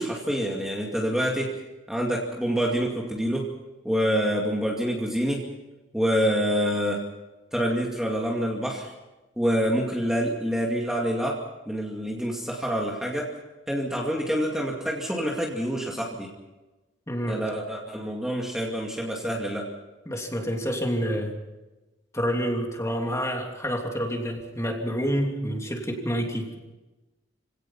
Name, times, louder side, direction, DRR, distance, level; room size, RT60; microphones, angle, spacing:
voice 1, 0.0-1.6 1.9-3.5 3.8-5.5 5.9-7.0 7.5-8.9 9.4-13.3 13.7-16.3 17.3-19.7, equal, 5° right, -1 dB, 2.4 m, -27 dB
voice 2, 17.1-17.4 20.1-21.3 22.1-26.5, equal, 15° left, 2 dB, 3.0 m, -28 dB
26.0 x 17.5 x 5.7 m, 1.1 s
head